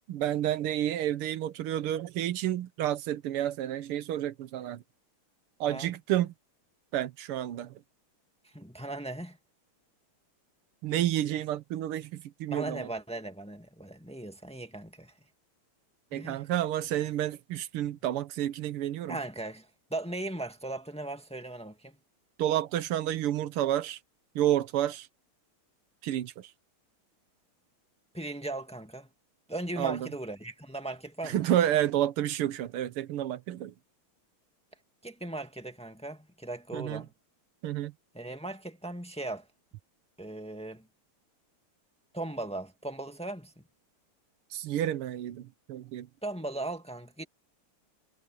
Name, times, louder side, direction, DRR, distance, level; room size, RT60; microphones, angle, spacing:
voice 1, 0.1-4.8 5.6-6.3 6.9-7.7 10.8-12.9 16.1-19.2 22.4-24.0 24.4-25.1 26.0-26.5 29.8-30.0 31.2-33.7 36.7-37.0 37.6-37.9 44.5-46.1, right 12 dB, 90° right, 1.8 m, -30 dB
voice 2, 8.4-9.4 12.5-15.1 16.1-16.5 19.1-22.0 28.1-29.1 29.5-31.4 35.0-37.1 38.1-39.5 40.2-40.8 42.1-43.6 46.2-47.2, right 2 dB, 5° left, 1.6 m, -38 dB
omnidirectional pair, 2.4 m